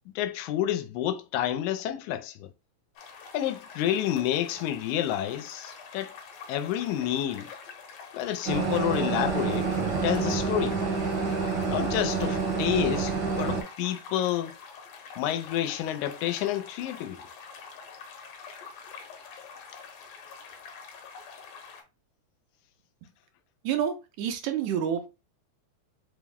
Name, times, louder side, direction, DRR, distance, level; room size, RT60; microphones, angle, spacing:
voice 1, 0.2-2.5 3.3-6.1 6.5-7.5 8.1-9.7 10.0-10.8 11.7-14.5 15.2-17.2, left 11 dB, 85° left, 2.0 m, -29 dB
sound 1, 3.0-21.8, left 5 dB, 70° left, 1.9 m, -46 dB
sound 2, 8.4-13.6, right 4 dB, 60° right, 1.2 m, -28 dB
voice 2, 23.6-25.1, right 9 dB, 85° right, 2.1 m, -29 dB
5.1 x 2.0 x 3.5 m
omnidirectional pair, 3.3 m